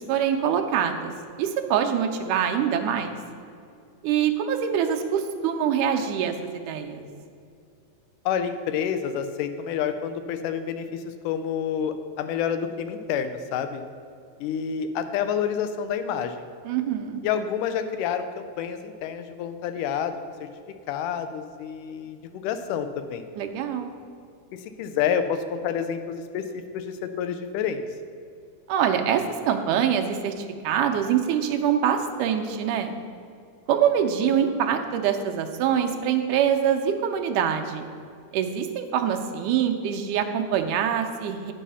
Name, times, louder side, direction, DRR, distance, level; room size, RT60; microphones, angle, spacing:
voice 1, 0.1-1.1 1.4-3.2 4.0-7.0 16.7-17.2 23.4-23.9 28.7-32.9 33.7-37.8 38.3-41.5, right 8 dB, 85° right, 5 dB, 2.3 m, -24 dB
voice 2, 8.3-13.8 14.4-16.5 17.2-20.5 20.9-23.2 24.5-27.8, left 8 dB, 90° left, 9 dB, 2.2 m, -29 dB
10.0 x 5.6 x 5.5 m, 2.4 s
omnidirectional pair, 3.6 m